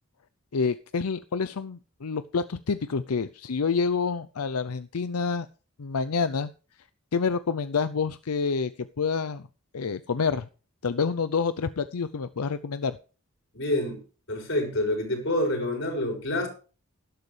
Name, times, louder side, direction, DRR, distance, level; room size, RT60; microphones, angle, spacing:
voice 1, 0.5-5.5 5.8-6.5 7.1-9.5 9.7-10.5 10.8-13.0, left 5 dB, 90° left, 0.6 m, -28 dB
voice 2, 13.5-14.0 14.3-16.5, left 1 dB, 55° left, 5.9 m, -27 dB
12.5 x 12.0 x 3.3 m
head